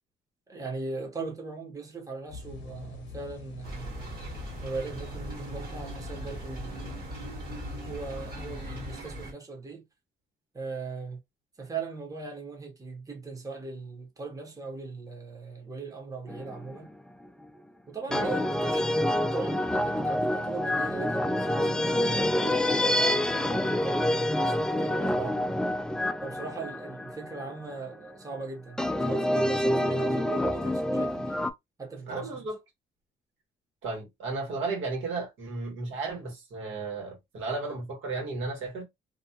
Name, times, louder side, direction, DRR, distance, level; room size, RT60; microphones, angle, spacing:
voice 1, 0.5-3.9 4.6-7.0 7.8-9.8 10.5-11.2 11.6-16.9 17.9-25.5 26.2-31.5 31.8-32.5, right 4 dB, 15° right, 0.8 m, -39 dB
sound 1, 2.3-9.0, left 5 dB, 65° left, 0.7 m, -44 dB
sound 2, 3.6-9.3, right 2 dB, 50° right, 1.4 m, -40 dB
sound 3, 16.3-16.8 18.1-27.8 28.8-31.5, left 1 dB, 5° left, 0.3 m, -27 dB
voice 2, 32.1-32.6 33.8-38.8, right 3 dB, 80° right, 1.3 m, -34 dB
2.5 x 2.3 x 2.7 m
cardioid pair, 90°, 20 cm